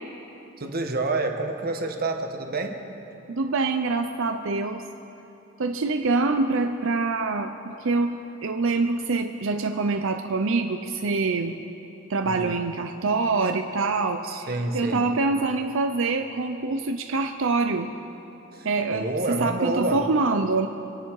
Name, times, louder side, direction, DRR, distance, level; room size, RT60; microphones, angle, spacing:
voice 1, 0.6-2.8 12.2-12.6 14.2-15.1 18.5-20.1, right 2 dB, 50° right, 4 dB, 1.3 m, -28 dB
voice 2, 3.3-4.8 5.6-11.6 12.1-17.9 18.6-20.7, right 3 dB, 65° right, 6 dB, 0.6 m, -25 dB
25.5 x 11.0 x 4.7 m, 2.9 s
head